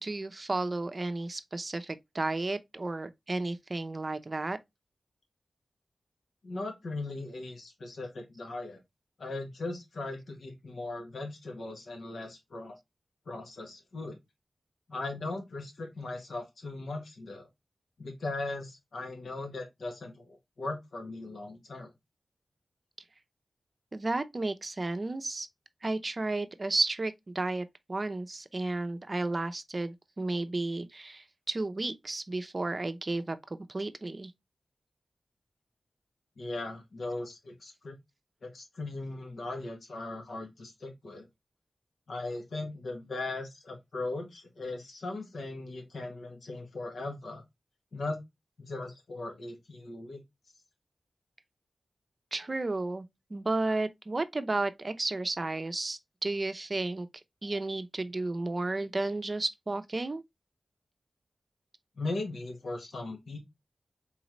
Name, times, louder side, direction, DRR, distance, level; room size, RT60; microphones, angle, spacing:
voice 1, 0.0-4.6 23.9-25.5 25.8-33.4 33.7-34.3 52.3-53.1 53.3-57.1 57.4-60.2, right 2 dB, 40° right, 0.6 m, -33 dB
voice 2, 6.4-8.8 9.2-12.8 13.2-14.2 14.9-17.5 18.0-21.9 36.4-38.0 38.4-41.3 42.1-47.4 47.9-48.2 48.6-50.2 62.0-63.4, left 2 dB, 85° left, 1.4 m, -38 dB
4.0 x 3.8 x 3.1 m
wide cardioid pair, 65°, 0 cm